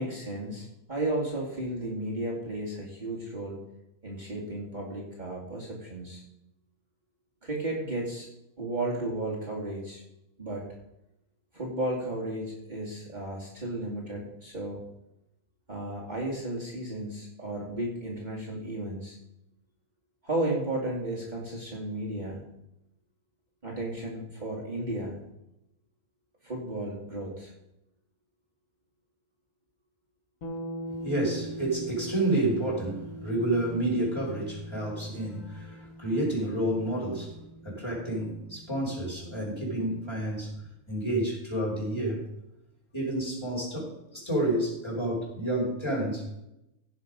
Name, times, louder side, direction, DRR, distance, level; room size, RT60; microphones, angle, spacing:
voice 1, 0.0-3.6 4.0-6.2 7.4-8.3 8.6-10.0 10.4-10.7 11.5-14.8 15.7-19.2 20.2-22.4 23.6-25.2 26.4-27.5 35.2-36.1, right 1 dB, 30° right, -4 dB, 2.8 m, -34 dB
sound 1, 30.4-40.2, equal, 80° left, 2.0 m, -43 dB
voice 2, 31.0-37.3 37.6-40.6 40.9-42.2 42.9-46.2, right 1 dB, 20° left, -4 dB, 5.2 m, -29 dB
16.5 x 7.2 x 5.3 m, 0.87 s
omnidirectional pair, 1.4 m